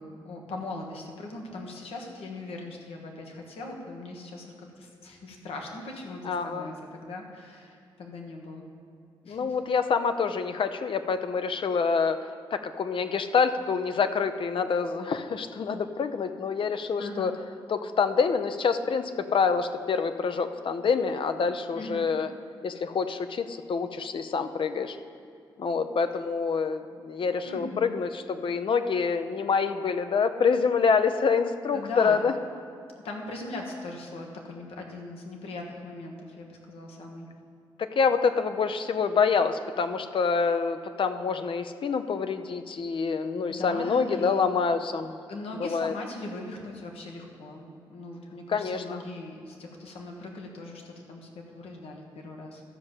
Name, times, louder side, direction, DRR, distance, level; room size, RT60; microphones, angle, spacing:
voice 1, 0.0-8.6 9.2-9.5 17.0-17.3 21.7-22.1 27.4-27.9 31.7-32.2 33.0-37.3 43.5-44.4 45.3-52.6, left 2 dB, 80° left, 1 dB, 1.5 m, -40 dB
voice 2, 6.2-6.7 9.3-12.2 12.5-17.3 17.7-22.3 22.6-25.0 25.6-32.3 37.8-45.2 45.6-45.9 48.5-49.0, left 5 dB, 60° left, 9 dB, 0.7 m, -26 dB
13.0 x 5.3 x 7.3 m, 2.4 s
supercardioid pair, 45°, 10 cm